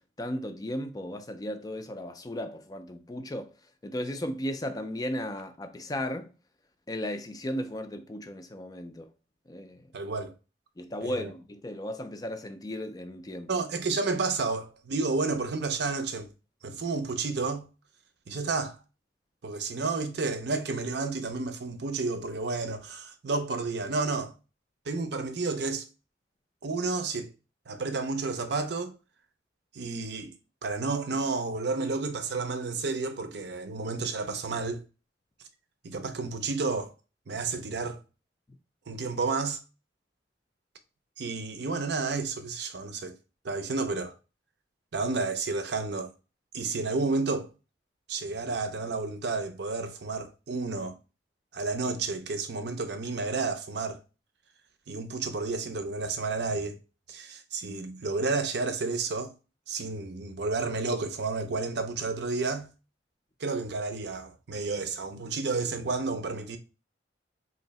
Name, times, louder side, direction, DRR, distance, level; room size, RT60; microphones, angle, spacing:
voice 1, 0.2-3.5 3.8-6.3 6.9-9.1 9.5-9.9 10.8-13.5, left 1 dB, 20° left, 0.4 m, -35 dB
voice 2, 9.9-10.3 11.0-11.3 13.5-16.3 16.6-17.7 18.3-18.8 19.4-24.3 24.9-25.9 26.6-27.3 27.7-28.9 29.7-30.3 30.6-34.8 35.8-36.9 37.3-38.0 38.9-39.6 41.2-43.1 43.4-44.1 44.9-46.1 46.5-47.5 48.1-51.0 51.5-54.0 54.9-56.8 57.1-59.3 59.7-62.7 63.4-66.6, right 3 dB, 65° right, 0.6 m, -31 dB
3.1 x 2.7 x 4.0 m
head